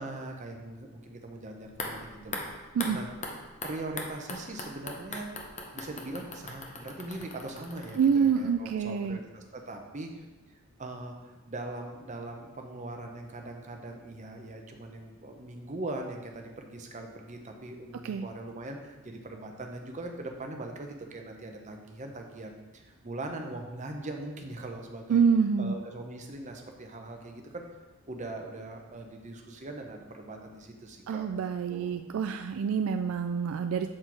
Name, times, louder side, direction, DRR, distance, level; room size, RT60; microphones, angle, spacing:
voice 1, 0.0-3.1 3.6-5.3 5.7-10.2 10.8-25.2 25.6-27.6 28.1-31.2 31.7-31.9, right 2 dB, 30° right, 3 dB, 0.8 m, -41 dB
sound 1, 1.6-8.8 9.0-9.1, left 2 dB, 30° left, 0.7 m, -41 dB
voice 2, 8.0-9.2 18.0-18.3 25.1-25.7 31.1-33.9, right 6 dB, 65° right, 7 dB, 0.3 m, -26 dB
7.5 x 4.4 x 4.6 m, 1.2 s
head